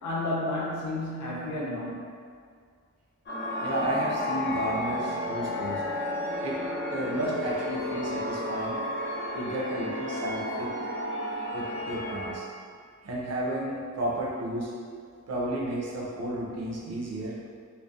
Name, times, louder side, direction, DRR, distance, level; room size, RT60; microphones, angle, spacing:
voice 1, 0.0-2.0, left 1 dB, 90° left, -6 dB, 0.6 m, -31 dB
sound 1, 3.3-12.3, left 1 dB, 40° left, 0.5 m, -32 dB
voice 2, 3.6-5.8 6.4-6.6 6.9-8.8 9.3-10.7 11.5-12.5 13.0-14.7 15.3-17.4, right 1 dB, 60° right, -4 dB, 0.5 m, -32 dB
2.5 x 2.1 x 2.3 m, 2.1 s
wide cardioid pair, 140°, 30 cm